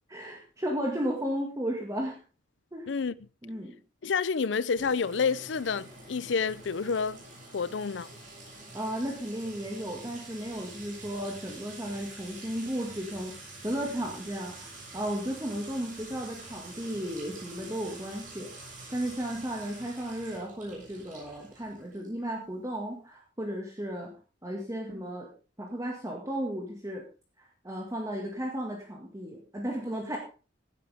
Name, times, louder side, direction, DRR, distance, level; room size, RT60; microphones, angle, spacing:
voice 1, 0.1-2.2 2.7-2.9 3.4-3.8 8.7-13.4 13.6-24.1 24.4-25.3 25.6-27.0 27.4-30.2, equal, 20° right, 1.9 m, -34 dB
voice 2, 4.0-7.2 7.5-8.1, left 5 dB, 75° left, 0.5 m, -29 dB
Sink (filling or washing) / Trickle dribble / Fill (with liquid), 4.8-22.2, right 2 dB, 45° right, 7.1 m, -47 dB
16.5 x 9.7 x 3.5 m
head